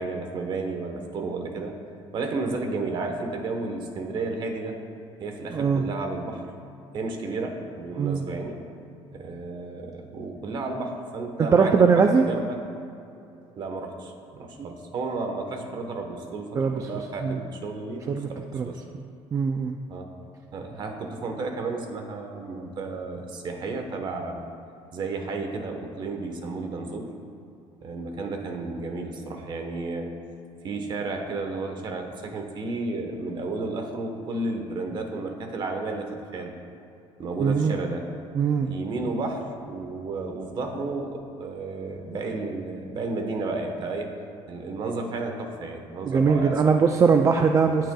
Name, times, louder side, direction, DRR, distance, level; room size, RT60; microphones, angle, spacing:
voice 1, 0.0-1.7 2.1-4.8 5.2-6.4 6.9-8.6 9.1-12.6 13.5-18.0 18.3-18.8 19.9-20.1 20.5-24.5 24.9-27.1 27.8-30.1 30.6-36.5 37.2-38.1 38.6-44.1 44.5-46.8 47.7-47.9, right 3 dB, 45° right, 4 dB, 1.2 m, -32 dB
voice 2, 5.5-5.8 8.0-8.3 11.5-12.3 16.6-16.8 17.2-17.4 18.1-18.3 18.5-18.7 18.9-19.0 19.3-19.8 37.4-37.8 38.3-38.7 46.0-47.9, right 5 dB, 30° right, 4 dB, 0.4 m, -21 dB
17.5 x 7.6 x 2.3 m, 2.7 s
cardioid pair, 145°, 11 cm